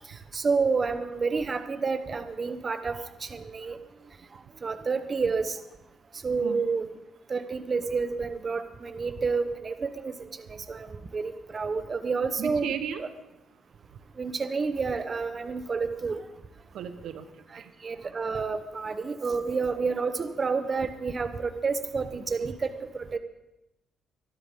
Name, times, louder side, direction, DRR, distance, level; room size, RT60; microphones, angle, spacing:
voice 1, 0.1-3.8 4.6-5.6 6.2-6.9 7.3-12.7 13.0-13.1 14.2-16.3 17.5-23.2, right 4 dB, 35° right, 10 dB, 1.0 m, -29 dB
voice 2, 12.4-13.0 16.7-17.7, right 8 dB, 75° right, 9 dB, 1.1 m, -35 dB
23.5 x 12.0 x 3.8 m, 0.92 s
cardioid pair, 90°, 0 cm